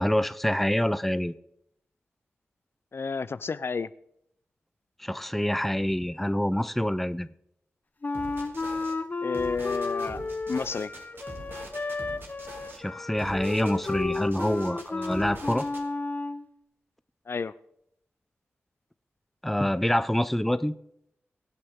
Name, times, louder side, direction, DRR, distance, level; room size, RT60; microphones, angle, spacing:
voice 1, 0.0-1.3 5.0-7.3 12.8-15.7 19.4-20.7, left 1 dB, 5° left, 14 dB, 0.5 m, -26 dB
voice 2, 2.9-3.9 9.2-10.2 10.5-10.9 17.3-17.5, left 5 dB, 60° left, 16 dB, 0.5 m, -31 dB
Wind instrument woodwind instrument, 8.0-16.4, left 3 dB, 40° left, 1.0 m, -33 dB
sound 1, 8.1-8.9 9.3-12.8 13.2-15.8, right 1 dB, 50° right, 2.5 m, -43 dB
23.0 x 8.6 x 3.6 m, 0.74 s
wide cardioid pair, 80°, 5 cm